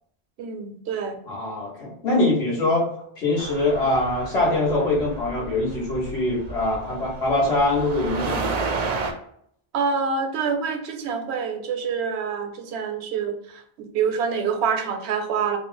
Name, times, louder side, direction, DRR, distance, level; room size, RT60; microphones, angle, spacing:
voice 1, 0.4-1.2 9.7-15.6, right 6 dB, 80° right, 6 dB, 0.8 m, -26 dB
voice 2, 1.3-2.9 3.2-8.7, left 2 dB, 75° left, -5 dB, 1.5 m, -23 dB
sound 1, 3.4-9.1, right 4 dB, 55° right, 0.5 m, -32 dB
3.0 x 2.0 x 3.8 m, 0.68 s
omnidirectional pair, 1.1 m